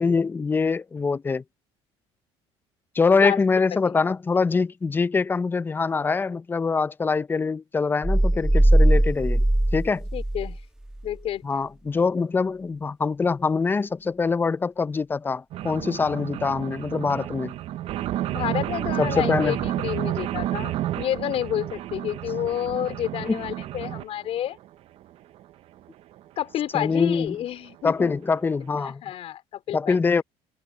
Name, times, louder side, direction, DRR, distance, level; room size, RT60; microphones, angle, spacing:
voice 1, 0.0-1.4 3.0-9.4 9.7-10.0 11.4-17.5 19.0-19.6 23.3-23.4 26.7-27.4 27.8-29.0 29.7-30.2, left 4 dB, 15° left, 0.5 m, -24 dB
sound 1, 8.0-10.6 10.9-11.1, right 1 dB, 5° right, 1.2 m, -20 dB
voice 2, 10.1-10.6 11.0-11.4 18.3-24.6 26.4-28.1 28.8-30.0, left 11 dB, 55° left, 4.4 m, -29 dB
sound 2, 15.5-24.0 24.6-24.7 25.0-25.1 25.4-25.5 25.8-25.9 26.2-26.3 26.9-27.0 27.3-27.4 27.7-27.8 28.1-28.2 28.5-28.6, right 13 dB, 60° right, 0.7 m, -30 dB
cardioid pair, 120°, 12 cm